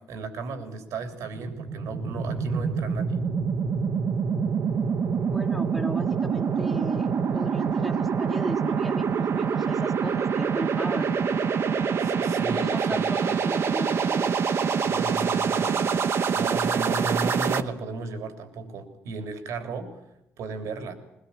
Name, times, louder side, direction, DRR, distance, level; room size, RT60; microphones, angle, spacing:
voice 1, 0.0-3.2 12.0-13.0 13.3-13.4 14.8-16.0 16.3-20.0 20.4-20.9, right 3 dB, 80° right, 7 dB, 3.5 m, -35 dB
sound 1, 1.1-17.6, right 6 dB, 60° right, 1.6 m, -26 dB
voice 2, 5.3-11.2 12.5-14.3, equal, 5° left, 0 dB, 1.7 m, -36 dB
21.0 x 19.0 x 8.6 m, 0.86 s
cardioid pair, 75°, 5 cm